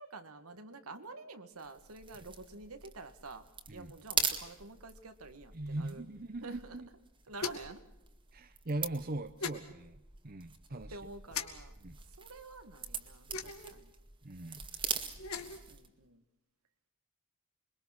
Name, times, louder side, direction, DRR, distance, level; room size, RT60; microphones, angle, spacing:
voice 1, 0.0-6.0 6.4-6.8 7.3-7.8 10.9-11.8 12.0-13.9 15.3-16.2, right 3 dB, 80° right, 7 dB, 2.0 m, -49 dB
sound 1, 1.6-15.9, right 6 dB, 20° right, 2.0 m, -42 dB
voice 2, 5.5-6.9 8.3-11.0 11.8-12.0 14.2-14.6, right 2 dB, 40° right, 9 dB, 0.9 m, -40 dB
sound 2, 7.4-7.8 9.4-9.6 11.3-11.5 13.3-13.8 15.1-15.6, left 5 dB, 75° left, 2.4 m, -38 dB
27.5 x 22.5 x 6.0 m, 0.90 s
head